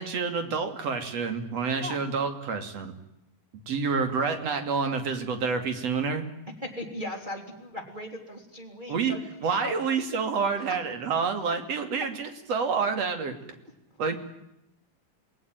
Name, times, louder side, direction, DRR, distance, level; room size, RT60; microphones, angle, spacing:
voice 1, 0.0-2.9 3.7-6.3 8.9-9.2 9.4-13.4 14.0-14.2, right 5 dB, 50° right, 7 dB, 3.6 m, -28 dB
voice 2, 6.6-9.7 10.5-10.8 13.9-14.2, left 1 dB, 15° right, 1 dB, 3.4 m, -38 dB
28.5 x 19.5 x 9.2 m, 0.82 s
omnidirectional pair, 4.0 m